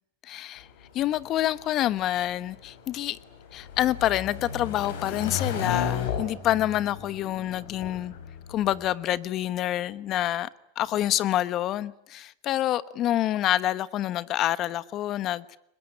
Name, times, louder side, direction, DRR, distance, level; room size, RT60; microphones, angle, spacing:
voice 1, 0.2-0.7 0.9-3.2 3.5-8.1 8.5-10.5 10.8-15.6, left 13 dB, 45° left, 17 dB, 1.1 m, -27 dB
sound 1, 0.6-8.9, left 7 dB, 75° left, 5.1 m, -35 dB
23.5 x 21.0 x 10.0 m, 0.77 s
hypercardioid pair, 110°, 0 cm